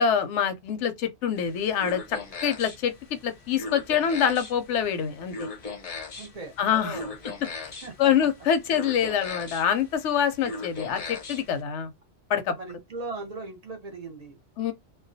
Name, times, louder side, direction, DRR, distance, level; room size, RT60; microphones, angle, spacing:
voice 1, 0.0-5.5 6.6-7.0 8.0-11.9 12.3-12.5 14.6-14.7, left 8 dB, 85° left, 0.9 m, -25 dB
sound 1, 1.4-11.6, left 3 dB, 45° left, 0.5 m, -39 dB
voice 2, 6.1-7.1 7.6-8.1 12.3-14.4, right 3 dB, 40° right, 0.7 m, -39 dB
2.3 x 2.1 x 2.6 m
omnidirectional pair, 1.2 m